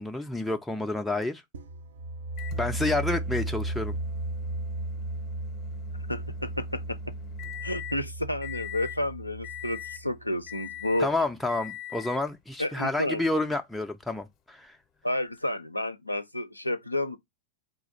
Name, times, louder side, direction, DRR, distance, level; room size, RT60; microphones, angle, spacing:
voice 1, 0.0-1.4 2.6-4.0 11.0-14.7, left 2 dB, 5° left, 0.4 m, -29 dB
sound 1, 1.5-11.1, right 2 dB, 65° right, 0.4 m, -35 dB
Microwave oven, 2.4-8.0 8.4-9.0 9.4-10.1 10.5-11.1 11.5-12.3 13.3-13.4 15.4-15.5, left 12 dB, 35° left, 0.7 m, -43 dB
voice 2, 6.1-7.0 7.6-11.1 12.6-13.2 15.0-17.2, left 1 dB, 85° left, 0.4 m, -31 dB
3.9 x 2.4 x 3.9 m
figure-of-eight pair, 90°, 0 cm